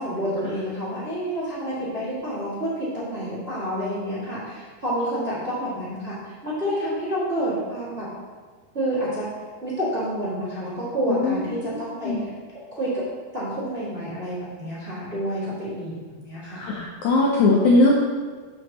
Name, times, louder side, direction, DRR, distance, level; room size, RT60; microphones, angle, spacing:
voice 1, 0.0-8.1 8.7-9.3 9.6-12.1 12.7-13.0 13.3-16.6, equal, 25° right, -9 dB, 1.5 m, -28 dB
voice 2, 11.1-11.7 12.1-12.2 16.6-18.0, left 2 dB, 75° left, -3 dB, 1.8 m, -20 dB
12.5 x 5.8 x 3.0 m, 1.4 s
omnidirectional pair, 4.2 m